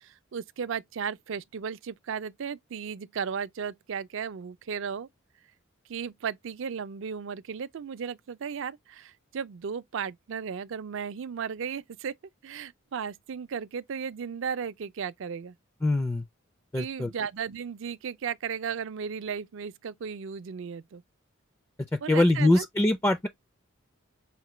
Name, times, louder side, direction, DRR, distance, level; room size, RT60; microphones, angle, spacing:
voice 1, 0.0-5.1 5.9-12.1 12.4-15.5 16.8-21.0 22.0-22.7, right 6 dB, 65° right, 0.4 m, -35 dB
voice 2, 15.8-16.3 16.7-17.1 22.1-23.3, left 1 dB, 15° left, 0.4 m, -23 dB
5.6 x 2.2 x 3.0 m
head